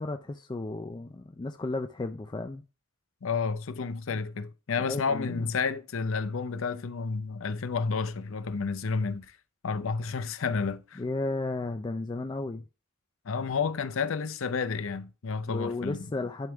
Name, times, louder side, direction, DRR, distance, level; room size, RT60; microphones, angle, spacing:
voice 1, 0.0-2.6 4.8-5.5 11.0-12.6 15.5-16.5, left 2 dB, 20° left, 0.4 m, -34 dB
voice 2, 3.2-9.3 9.6-11.0 13.3-16.1, left 5 dB, 70° left, 0.6 m, -31 dB
10.5 x 3.6 x 3.4 m
head